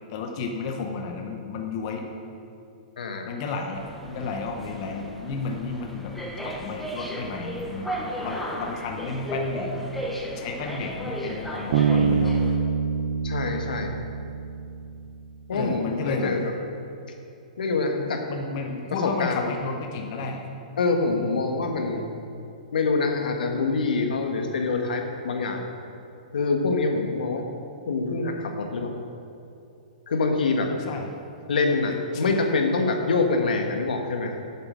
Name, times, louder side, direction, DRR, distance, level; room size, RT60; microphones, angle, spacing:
voice 1, 0.1-2.0 3.3-6.1 6.4-9.9 10.3-12.4 15.5-16.3 18.3-20.4 30.9-31.1 32.1-32.4, left 4 dB, 35° left, 2 dB, 0.8 m, -32 dB
voice 2, 3.0-3.3 13.2-14.0 15.5-16.5 17.1-17.2 17.6-18.2 19.0-19.5 20.8-22.1 22.7-25.7 26.3-27.5 27.9-28.9 30.1-30.7 31.5-34.5, left 3 dB, 85° left, 3 dB, 1.5 m, -25 dB
sound 1, 3.7-12.6, equal, ahead, 0.8 m, -34 dB
Bass guitar, 11.7-15.2, right 5 dB, 45° right, 0.7 m, -25 dB
8.6 x 8.4 x 6.4 m, 2.6 s
hypercardioid pair, 170°, 5 cm